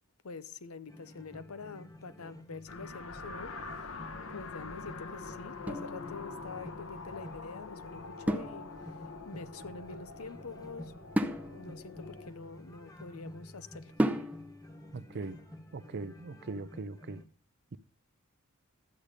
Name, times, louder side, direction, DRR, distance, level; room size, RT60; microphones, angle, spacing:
voice 1, 0.2-3.9 4.3-10.9 11.5-13.9, left 4 dB, 90° left, 0.8 m, -46 dB
sound 1, 0.9-17.2, left 1 dB, 15° left, 1.3 m, -51 dB
sound 2, 2.7-12.3, left 3 dB, 70° left, 1.0 m, -45 dB
sound 3, 5.6-6.6 8.3-9.2 11.1-13.1 14.0-14.7, equal, 5° right, 0.6 m, -34 dB
voice 2, 14.9-15.4 15.7-17.2, right 3 dB, 50° right, 0.5 m, -40 dB
12.0 x 8.2 x 5.0 m
head